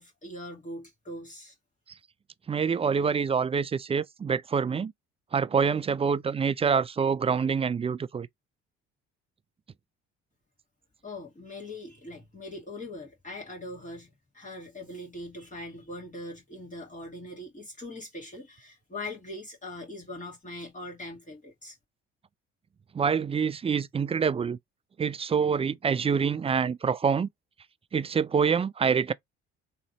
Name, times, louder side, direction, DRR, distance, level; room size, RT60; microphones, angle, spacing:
voice 1, 0.0-1.5 11.0-21.8, left 1 dB, 25° left, 2.4 m, -41 dB
voice 2, 2.5-4.9 5.3-8.3 22.9-24.6 25.0-27.3 27.9-29.1, right 6 dB, 20° right, 0.3 m, -26 dB
3.7 x 3.2 x 2.9 m
hypercardioid pair, 60°, 32 cm